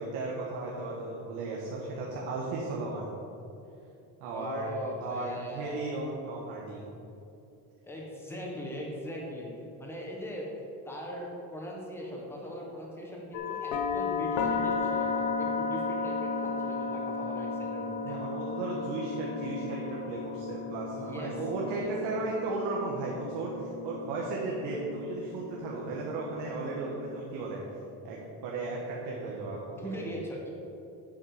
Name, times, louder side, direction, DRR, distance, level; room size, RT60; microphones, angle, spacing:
voice 1, 0.0-3.1 4.2-4.7 5.0-6.8 18.0-27.6 28.0-30.0, right 3 dB, 85° right, -3 dB, 1.4 m, -35 dB
voice 2, 4.3-5.8 7.8-9.5 9.8-10.5 10.8-18.2 20.9-21.4 21.8-21.9 29.8-30.5, equal, 5° left, -2 dB, 1.3 m, -40 dB
sound 1, 13.3-27.2, left 4 dB, 65° left, 0.9 m, -34 dB
7.9 x 7.4 x 4.9 m, 2.9 s
cardioid pair, 175°, 36 cm